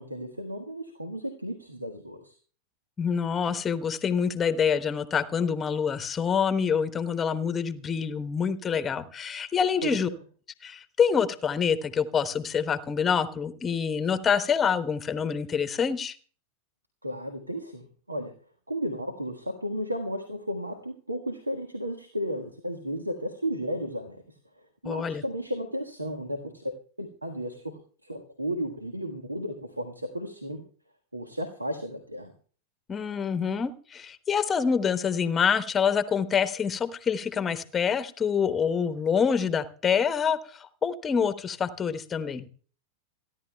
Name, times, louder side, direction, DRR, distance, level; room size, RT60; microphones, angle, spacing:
voice 1, 0.0-2.4 9.8-10.1 17.0-18.3 18.7-24.4 24.8-26.7 27.0-30.6 31.1-32.3, equal, 85° right, 8 dB, 1.4 m, -34 dB
voice 2, 3.0-10.1 10.6-16.1 24.8-25.2 32.9-42.5, left 6 dB, 20° left, 13 dB, 1.0 m, -26 dB
27.5 x 11.0 x 2.2 m, 0.42 s
figure-of-eight pair, 90°, 0 cm